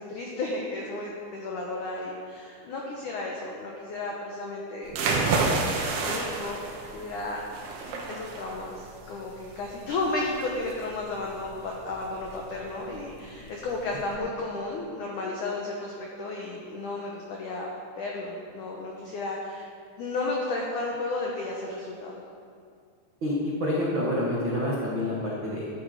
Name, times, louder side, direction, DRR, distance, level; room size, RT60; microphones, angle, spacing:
voice 1, 0.0-5.7 6.0-6.6 6.9-7.4 8.1-17.7 18.0-19.7 20.0-22.2, left 2 dB, 80° left, -1 dB, 1.7 m, -33 dB
sound 1, 4.9-14.2, right 3 dB, 65° right, 3.0 m, -31 dB
voice 2, 23.2-25.7, left 1 dB, 85° right, -6 dB, 1.1 m, -28 dB
13.0 x 10.0 x 5.0 m, 2.2 s
omnidirectional pair, 5.4 m